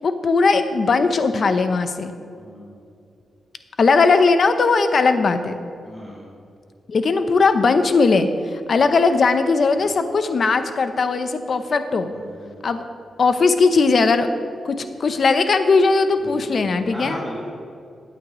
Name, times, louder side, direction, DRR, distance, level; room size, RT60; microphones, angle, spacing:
voice 1, 0.0-2.1 3.8-5.6 6.9-12.1 12.6-12.8 13.2-14.3 14.6-17.2, left 4 dB, 55° left, 9 dB, 0.8 m, -18 dB
voice 2, 2.4-2.8 5.8-6.3 9.8-9.9 12.1-12.6 16.2-16.5 16.9-17.5, equal, 5° right, -6 dB, 2.1 m, -36 dB
16.0 x 9.0 x 3.1 m, 2.4 s
cardioid pair, 85°, 0 cm